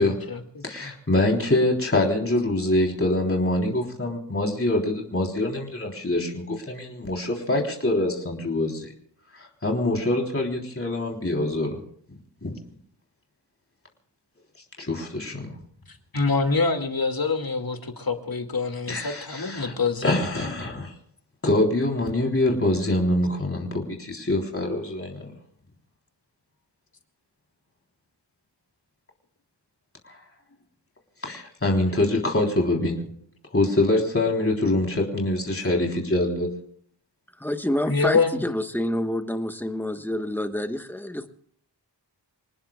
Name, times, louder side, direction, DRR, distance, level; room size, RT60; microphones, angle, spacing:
voice 1, 0.0-0.9 16.1-20.1 37.9-38.4, left 4 dB, 50° left, 2.3 m, -26 dB
voice 2, 0.6-8.9 9.3-11.8 12.4-12.6 14.8-15.6 18.9-19.7 20.0-20.9 21.4-25.3 30.1-30.2 31.2-33.1 33.5-36.5, left 1 dB, 30° left, 3.7 m, -24 dB
voice 3, 37.4-41.3, left 1 dB, 5° left, 1.3 m, -28 dB
28.0 x 19.5 x 2.4 m
wide cardioid pair, 80°, 44 cm